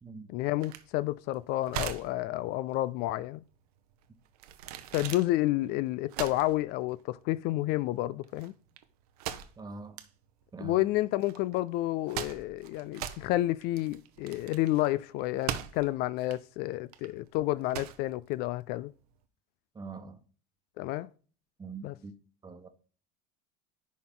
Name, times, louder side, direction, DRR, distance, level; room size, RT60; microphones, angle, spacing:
voice 1, 0.3-3.4 4.9-8.5 10.6-18.9 20.8-21.1 21.8-21.9, left 16 dB, 55° left, 0.4 m, -30 dB
sound 1, 0.6-19.1, right 10 dB, 75° right, 0.9 m, -41 dB
voice 2, 9.6-10.0 10.5-10.8 19.7-20.2 21.6-22.1 22.4-22.7, right 4 dB, 20° right, 1.2 m, -43 dB
10.5 x 4.3 x 3.8 m
hypercardioid pair, 85°, 20 cm